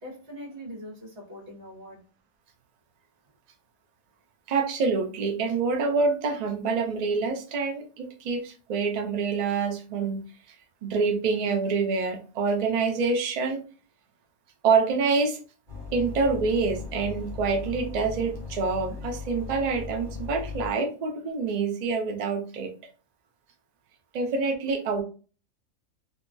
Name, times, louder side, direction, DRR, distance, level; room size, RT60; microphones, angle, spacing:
voice 1, 0.0-2.0, equal, 55° right, 1.2 m, -42 dB
voice 2, 4.5-10.2 10.8-13.6 14.6-15.4 15.9-22.7 24.1-25.0, right 4 dB, 90° right, 0.3 m, -26 dB
sound 1, 15.7-20.7, left 5 dB, 35° right, 1.2 m, -38 dB
2.7 x 2.2 x 2.5 m
omnidirectional pair, 1.4 m